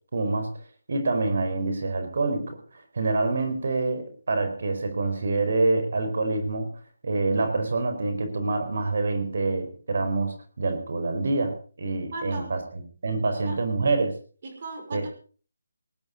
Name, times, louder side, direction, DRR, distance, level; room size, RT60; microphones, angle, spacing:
voice 1, 0.1-0.5 0.9-6.7 7.0-14.2 14.9-15.1, right 3 dB, 55° right, 8 dB, 4.7 m, -26 dB
voice 2, 12.1-12.5 13.5-13.6 14.4-15.1, right 3 dB, 40° right, 6 dB, 5.7 m, -37 dB
19.5 x 11.0 x 5.3 m, 0.40 s
hypercardioid pair, 170°, 0 cm